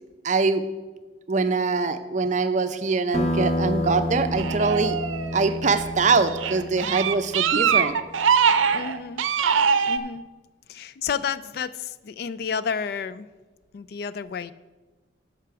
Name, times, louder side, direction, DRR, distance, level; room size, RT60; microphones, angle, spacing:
voice 1, 0.2-0.6 1.3-5.0 5.3-7.9, right 4 dB, 40° right, 10 dB, 0.5 m, -23 dB
sound 1, 3.1-8.3, left 1 dB, 35° left, 0.8 m, -30 dB
sound 2, 4.4-5.7 6.3-10.0, right 7 dB, 90° right, 0.6 m, -22 dB
voice 2, 8.7-9.2 9.9-10.2 10.7-13.3 13.7-14.5, left 6 dB, 50° left, 15 dB, 0.3 m, -31 dB
12.5 x 5.8 x 4.6 m, 1.2 s
head